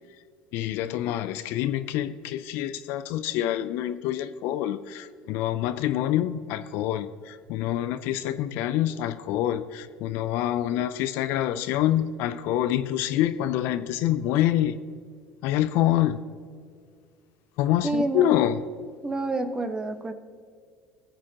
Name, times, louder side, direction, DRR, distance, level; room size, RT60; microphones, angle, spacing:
voice 1, 0.5-14.8 15.4-16.2 17.6-18.6, left 12 dB, 65° left, 12 dB, 0.5 m, -26 dB
voice 2, 17.8-18.4 19.0-20.1, right 2 dB, 20° right, 7 dB, 1.3 m, -28 dB
21.0 x 7.3 x 2.9 m, 2.1 s
hypercardioid pair, 75°, 4 cm